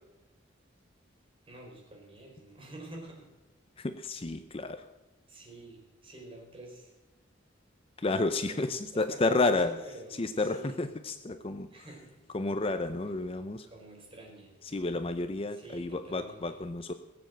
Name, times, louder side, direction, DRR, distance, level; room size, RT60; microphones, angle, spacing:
voice 1, 1.4-3.3 5.3-6.9 8.5-8.6 8.9-10.8 11.7-12.3 13.7-14.6 15.5-16.5, right 2 dB, 30° right, 0 dB, 4.4 m, -48 dB
voice 2, 3.8-4.9 8.0-9.7 10.2-11.7 12.3-13.7 14.7-16.9, left 3 dB, 30° left, 9 dB, 0.5 m, -31 dB
19.5 x 7.4 x 7.7 m, 1.1 s
head